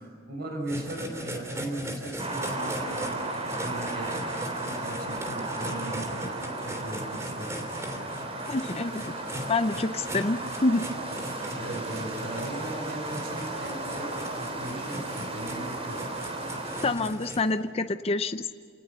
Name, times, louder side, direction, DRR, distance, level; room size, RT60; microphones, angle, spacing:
voice 1, 0.3-7.5 11.2-16.1, right 1 dB, 50° right, 3 dB, 5.5 m, -38 dB
sound 1, 0.7-17.4, equal, 15° right, 3.1 m, -39 dB
sound 2, 2.2-16.9, right 2 dB, 30° right, 3.5 m, -35 dB
voice 2, 8.5-9.2 9.5-10.8 16.8-18.5, left 2 dB, 30° left, 10 dB, 0.6 m, -27 dB
28.5 x 19.5 x 6.9 m, 2.1 s
head